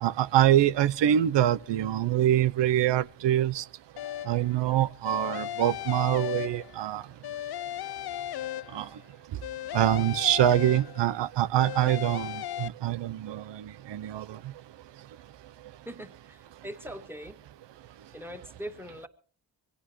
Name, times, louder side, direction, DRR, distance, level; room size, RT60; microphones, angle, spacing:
voice 1, 0.0-3.6 4.3-7.0 8.7-8.9 9.7-14.4, right 12 dB, 65° right, 0.8 m, -25 dB
sound 1, 4.0-4.5 5.1-6.9 7.2-9.0 9.4-11.2 11.6-12.7, left 12 dB, 55° left, 0.7 m, -36 dB
voice 2, 15.8-17.4 18.1-19.1, equal, 5° right, 2.6 m, -41 dB
23.5 x 17.0 x 3.2 m
supercardioid pair, 50°, 46 cm